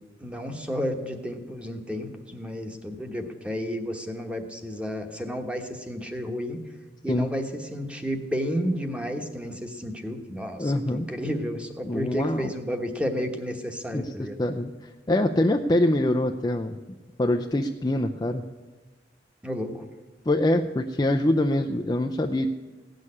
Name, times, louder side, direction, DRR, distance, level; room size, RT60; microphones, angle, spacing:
voice 1, 0.2-6.6 7.0-14.4 19.4-19.9, equal, 5° right, 5 dB, 1.2 m, -32 dB
voice 2, 10.6-11.1 11.9-12.5 13.9-14.7 15.1-16.8 17.2-18.4 20.3-22.5, left 1 dB, 20° left, 4 dB, 0.5 m, -24 dB
16.5 x 6.5 x 9.8 m, 1.3 s
head